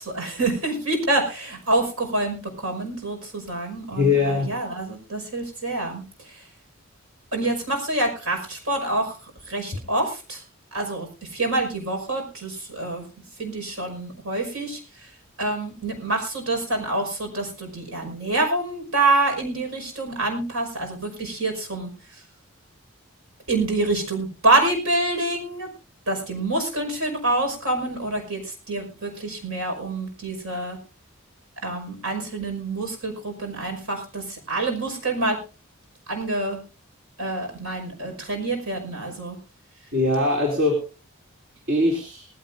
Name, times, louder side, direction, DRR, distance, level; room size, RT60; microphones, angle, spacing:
voice 1, 0.0-6.5 7.3-10.4 10.7-13.1 13.4-15.1 15.4-22.2 23.5-25.7 26.1-30.8 31.6-35.4 36.1-36.6 37.2-39.4, right 2 dB, 80° right, 4 dB, 5.6 m, -26 dB
voice 2, 3.9-4.5 39.9-40.8 41.7-42.3, left 2 dB, 60° right, -1 dB, 3.1 m, -21 dB
19.5 x 15.5 x 2.7 m, 0.32 s
head